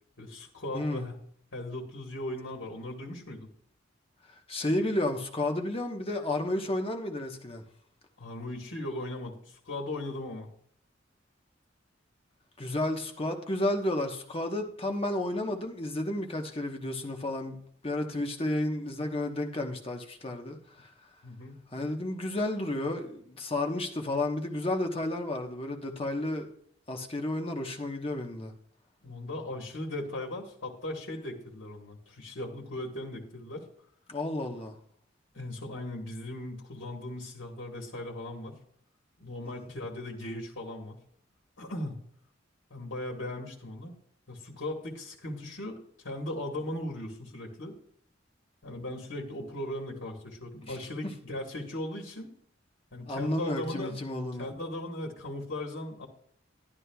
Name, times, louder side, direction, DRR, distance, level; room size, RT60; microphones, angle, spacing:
voice 1, 0.2-1.1 1.5-3.5 8.2-10.5 21.2-21.6 29.0-33.6 35.3-38.6 39.2-41.0 41.6-42.0 42.7-43.9 44.3-47.7 48.6-52.3 52.9-54.0 54.4-56.1, left 1 dB, 85° left, 1.5 m, -38 dB
voice 2, 4.5-7.6 12.6-20.9 21.7-26.5 26.9-28.5 34.1-34.7 39.5-39.7 50.6-50.8 51.0-51.1 53.1-54.5, left 1 dB, 30° left, 1.1 m, -32 dB
12.0 x 11.0 x 2.3 m
head